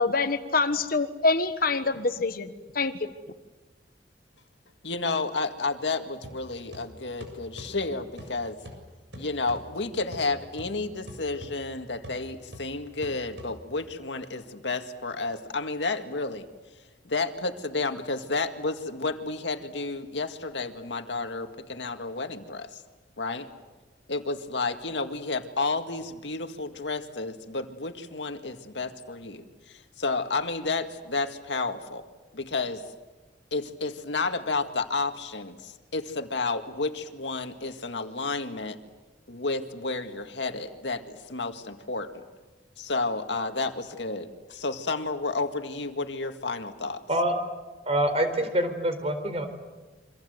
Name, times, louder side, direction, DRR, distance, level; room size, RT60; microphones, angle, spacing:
voice 1, 0.0-3.1, left 3 dB, 55° left, 10 dB, 1.4 m, -26 dB
voice 2, 4.8-8.6 9.2-16.5 17.0-22.8 23.2-23.5 24.1-32.0 32.3-32.8 33.5-38.8 39.3-42.2 42.8-47.0, left 3 dB, 80° left, 7 dB, 2.0 m, -31 dB
sound 1, 6.2-14.0, equal, 75° right, 7.1 m, -46 dB
voice 3, 47.9-49.5, right 1 dB, 35° right, 8 dB, 4.3 m, -25 dB
28.0 x 25.5 x 8.0 m, 1.2 s
head